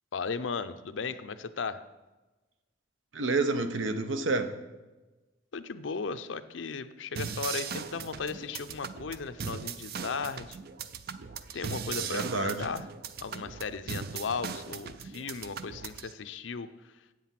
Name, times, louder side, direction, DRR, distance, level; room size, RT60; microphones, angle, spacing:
voice 1, 0.1-1.8 5.5-10.6 11.5-12.9 13.2-16.7, left 5 dB, 75° left, 11 dB, 0.6 m, -36 dB
voice 2, 3.1-4.5 12.0-12.7, right 3 dB, 80° right, 9 dB, 0.8 m, -29 dB
sound 1, 7.1-16.1, right 6 dB, 50° right, 0.4 m, -39 dB
8.1 x 7.6 x 5.8 m, 1.1 s
head